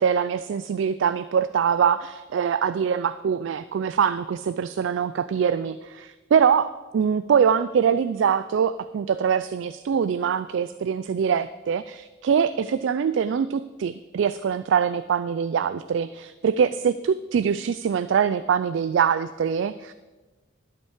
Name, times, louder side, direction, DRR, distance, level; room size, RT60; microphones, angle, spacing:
voice 1, 0.0-19.9, right 7 dB, 70° right, 13 dB, 0.3 m, -23 dB
12.0 x 5.5 x 7.2 m, 1.2 s
head